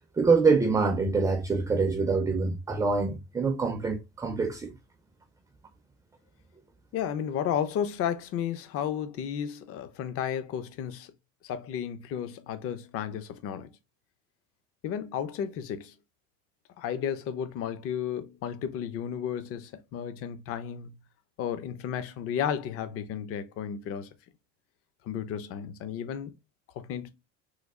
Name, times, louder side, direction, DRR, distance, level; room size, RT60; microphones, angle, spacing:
voice 1, 0.2-4.7, right 4 dB, 10° right, 0.4 m, -25 dB
voice 2, 6.9-11.1 11.4-13.7 14.8-15.9 16.8-21.0 21.4-24.1 25.0-26.3 26.8-27.1, left 9 dB, 50° left, 0.5 m, -33 dB
3.2 x 2.3 x 3.5 m
cardioid pair, 140°, 30 cm